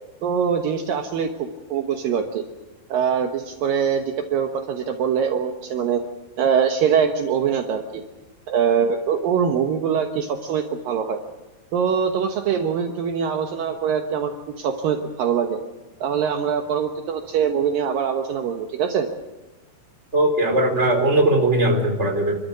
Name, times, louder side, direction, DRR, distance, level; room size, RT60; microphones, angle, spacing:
voice 1, 0.2-2.4 2.9-4.0 4.3-6.0 6.4-8.0 8.5-11.2 11.7-15.6 16.0-19.1, right 7 dB, 80° right, 5 dB, 2.0 m, -23 dB
voice 2, 20.1-22.4, right 1 dB, 15° right, 2 dB, 3.7 m, -19 dB
29.0 x 13.0 x 8.4 m, 1.1 s
omnidirectional pair, 5.9 m